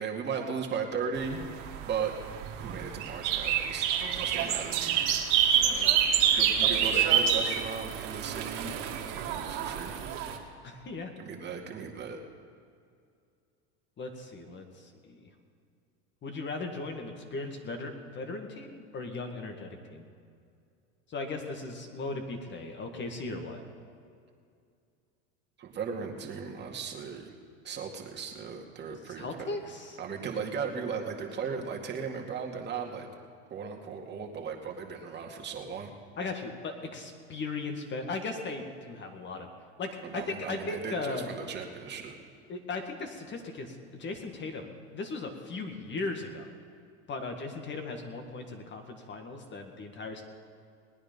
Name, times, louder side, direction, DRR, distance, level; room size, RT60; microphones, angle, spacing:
voice 1, 0.0-1.4 1.8-2.1 2.6-3.9 4.2-4.9 6.3-8.7 9.2-10.0 11.2-12.2 25.6-27.3 27.6-29.5 30.0-33.1 33.5-35.9 40.0-42.1, right 6 dB, 30° right, 1 dB, 2.2 m, -36 dB
sound 1, 1.2-10.4, right 8 dB, 60° right, 2.1 m, -28 dB
voice 2, 5.6-6.3 10.6-11.1 14.0-15.2 16.2-20.0 21.1-23.6 29.2-30.0 36.2-39.5 39.8-41.3 42.5-46.5 47.1-50.2, left 3 dB, 30° left, 5 dB, 1.9 m, -37 dB
19.5 x 9.8 x 5.4 m, 2.3 s
supercardioid pair, 110°, 35 cm